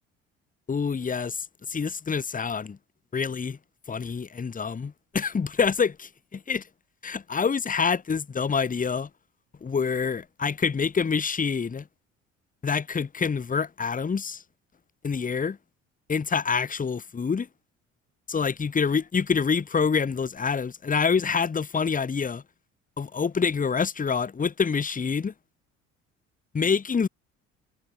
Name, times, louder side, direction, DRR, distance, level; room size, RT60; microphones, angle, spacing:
voice 1, 0.7-2.8 3.1-3.6 3.9-6.6 7.0-9.1 9.6-11.9 12.6-14.4 15.0-15.6 16.1-17.5 18.3-22.4 23.0-25.3 26.5-27.1, left 5 dB, 20° left, 1.2 m, -26 dB
hypercardioid pair, 55°, 36 cm